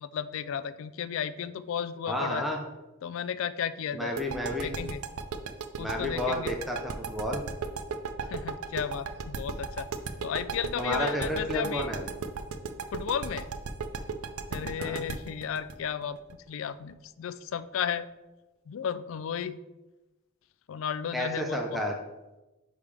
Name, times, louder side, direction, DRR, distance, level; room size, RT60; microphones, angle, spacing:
voice 1, 0.0-2.4 3.0-4.2 4.6-5.0 5.8-6.5 8.2-9.9 10.2-11.9 12.9-13.5 14.5-16.2 16.5-18.1 18.7-19.6 20.7-21.8, left 8 dB, 65° left, 15 dB, 0.3 m, -34 dB
voice 2, 2.1-2.6 3.9-4.7 5.8-7.4 10.8-12.1 14.8-15.0 21.1-22.0, equal, ahead, 0 dB, 0.6 m, -31 dB
sound 1, 4.2-16.9, right 5 dB, 80° right, 0.5 m, -35 dB
9.8 x 3.5 x 3.3 m, 1.1 s
head